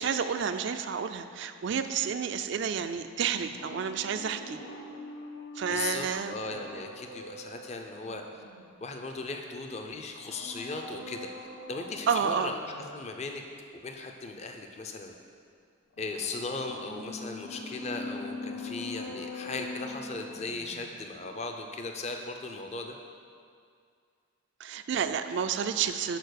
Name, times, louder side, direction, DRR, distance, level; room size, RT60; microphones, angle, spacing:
voice 1, 0.0-4.6 5.6-6.3 12.1-12.5 24.6-26.2, right 7 dB, 60° right, 9 dB, 0.3 m, -30 dB
sound 1, 3.3-9.1 10.1-13.2 15.9-21.1 21.4-21.5, left 2 dB, 70° left, 0.9 m, -43 dB
voice 2, 5.7-8.4 8.8-11.3 11.7-12.6 12.9-13.4 13.8-15.1 16.0-23.0, left 3 dB, 30° left, 4 dB, 0.5 m, -37 dB
6.7 x 4.8 x 6.4 m, 2.2 s
head